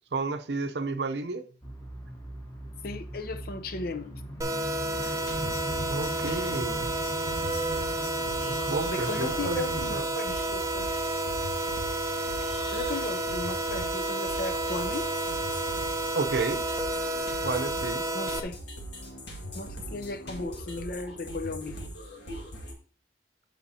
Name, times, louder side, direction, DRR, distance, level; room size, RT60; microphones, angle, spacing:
voice 1, 0.1-1.4 5.9-6.9 8.4-9.6 9.9-10.1 16.1-16.6 17.4-18.1, right 3 dB, 65° right, 0.6 m, -31 dB
sound 1, 1.6-10.0, equal, 15° left, 1.2 m, -40 dB
voice 2, 2.8-4.1 8.9-10.9 12.7-15.1 18.1-18.6 19.5-21.7, left 3 dB, 55° left, 0.6 m, -36 dB
sound 2, 4.4-18.4, right 2 dB, 20° right, 0.5 m, -31 dB
sound 3, 4.9-22.7, equal, 70° left, 1.7 m, -41 dB
8.5 x 5.7 x 2.7 m
head